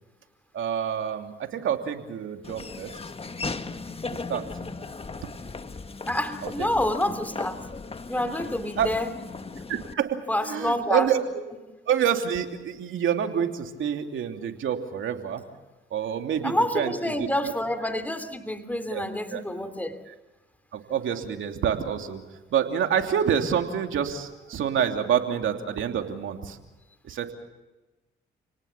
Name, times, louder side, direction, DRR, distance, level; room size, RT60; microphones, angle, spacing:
voice 1, 0.5-2.9 4.3-4.4 6.4-6.7 8.8-8.9 9.7-11.2 11.9-15.4 15.9-17.5 18.9-19.0 19.3-19.4 20.1-20.2 20.7-22.2 22.5-26.6 27.0-27.3, right 8 dB, 70° right, 4 dB, 2.9 m, -27 dB
Laughter / Walk footsteps, 2.4-9.9, left 3 dB, 30° left, 1.4 m, -37 dB
voice 2, 6.1-7.6 8.1-9.1 10.3-11.1 16.4-20.0, left 1 dB, 5° left, 9 dB, 3.0 m, -28 dB
30.0 x 19.0 x 7.2 m, 1.1 s
supercardioid pair, 65°, 21 cm